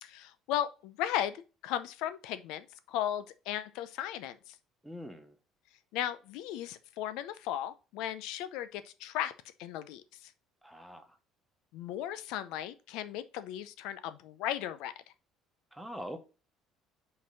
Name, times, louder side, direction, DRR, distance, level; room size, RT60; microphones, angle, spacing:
voice 1, 0.0-4.6 5.9-9.3 9.6-10.3 11.7-14.9, left 11 dB, 75° left, 0.6 m, -36 dB
voice 2, 4.8-5.3 10.6-11.1 15.7-16.2, equal, 5° right, 0.7 m, -43 dB
5.2 x 4.0 x 5.2 m
cardioid pair, 175°, 0 cm